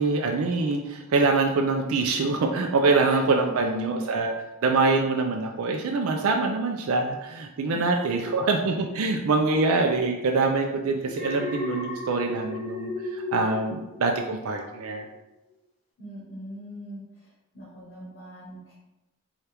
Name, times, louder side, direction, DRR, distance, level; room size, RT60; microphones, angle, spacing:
voice 1, 0.0-4.3 4.6-15.1, right 3 dB, 80° right, 3 dB, 0.4 m, -24 dB
voice 2, 3.3-4.0 7.7-7.8 16.0-17.0 17.5-18.7, equal, 55° left, -6 dB, 1.0 m, -40 dB
Alarm, 11.1-14.4 14.8-15.1, left 2 dB, 25° left, 1.2 m, -34 dB
4.3 x 2.4 x 3.3 m, 0.99 s
head